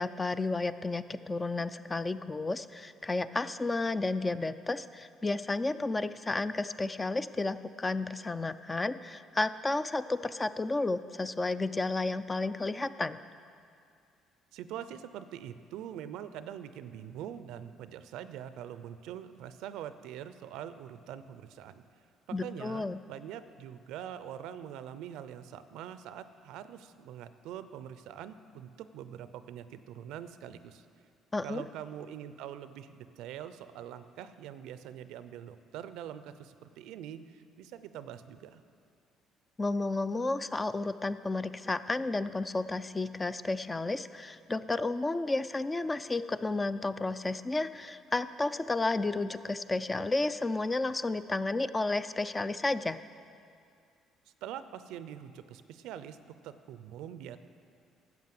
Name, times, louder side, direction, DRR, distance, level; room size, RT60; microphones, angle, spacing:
voice 1, 0.0-13.2 22.3-23.0 31.3-31.6 39.6-53.0, left 2 dB, 20° left, 13 dB, 0.4 m, -32 dB
voice 2, 14.5-21.8 22.3-30.8 31.4-38.6 54.4-56.2 56.4-57.4, right 10 dB, 80° right, 12 dB, 0.5 m, -44 dB
11.5 x 7.4 x 7.7 m, 2.4 s
supercardioid pair, 85°, 0 cm